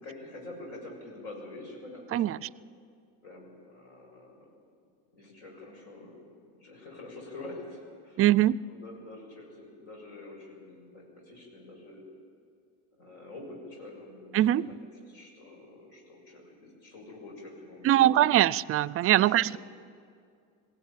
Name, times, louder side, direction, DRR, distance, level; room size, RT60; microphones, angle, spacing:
voice 1, 0.0-2.5 3.2-4.5 5.1-8.2 8.7-12.0 13.0-18.1 19.0-19.6, left 2 dB, 75° left, 0 dB, 7.0 m, -46 dB
voice 2, 8.2-8.6 14.3-14.8 17.8-19.6, right 13 dB, 35° right, 22 dB, 0.4 m, -22 dB
21.0 x 16.0 x 8.9 m, 2.2 s
supercardioid pair, 95°, 38 cm